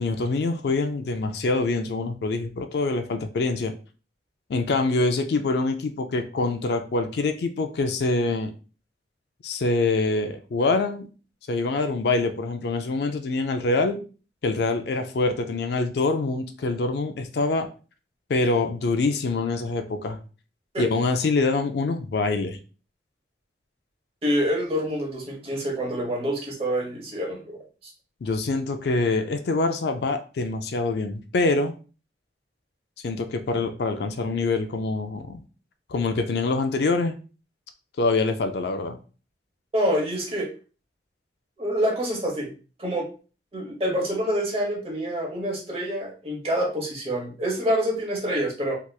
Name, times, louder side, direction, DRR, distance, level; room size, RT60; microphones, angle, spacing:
voice 1, 0.0-3.7 4.5-8.5 9.4-11.1 11.5-14.0 14.4-17.7 18.3-20.2 20.8-22.6 28.2-31.7 33.0-35.4 35.9-37.2 38.0-39.0, left 3 dB, 65° left, 7 dB, 0.4 m, -25 dB
voice 2, 24.2-27.6 39.7-40.5 41.6-42.5 42.8-43.1 43.5-48.7, equal, 35° right, -1 dB, 1.0 m, -26 dB
3.3 x 2.9 x 2.3 m, 0.35 s
head